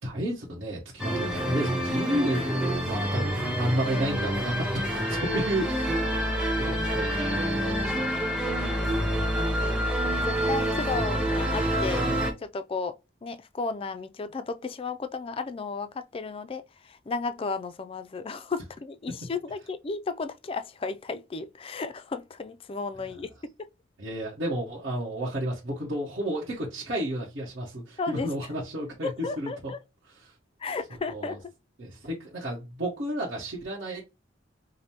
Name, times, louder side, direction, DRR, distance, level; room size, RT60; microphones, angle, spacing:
voice 1, 0.0-6.0 6.5-8.2 24.0-29.1 29.4-29.7 30.2-30.3 31.1-31.4 31.8-34.0, right 1 dB, 60° right, 1.2 m, -32 dB
sound 1, 1.0-12.3, equal, 5° right, 0.7 m, -27 dB
voice 2, 8.6-9.8 10.2-12.1 12.4-13.0 13.2-23.3 23.6-23.7 28.0-28.3 29.0-29.8 30.6-31.5, left 4 dB, 30° left, 0.3 m, -34 dB
5.2 x 2.1 x 2.8 m
head